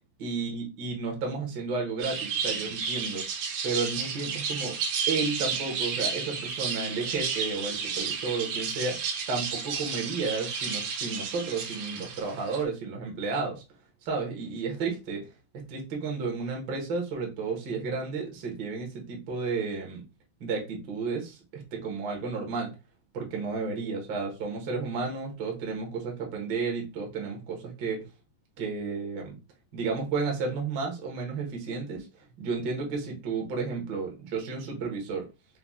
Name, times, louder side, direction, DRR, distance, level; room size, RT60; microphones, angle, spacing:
voice 1, 0.2-3.2 3.6-4.7 5.1-9.0 9.3-13.6 14.0-15.2 15.7-20.0 20.4-22.7 23.1-28.0 28.6-29.3 29.7-35.2, right 4 dB, 55° right, 0 dB, 1.3 m, -32 dB
sound 1, 2.0-12.6, right 6 dB, 80° right, 2.5 m, -32 dB
5.7 x 2.3 x 3.5 m, 0.29 s
omnidirectional pair, 3.6 m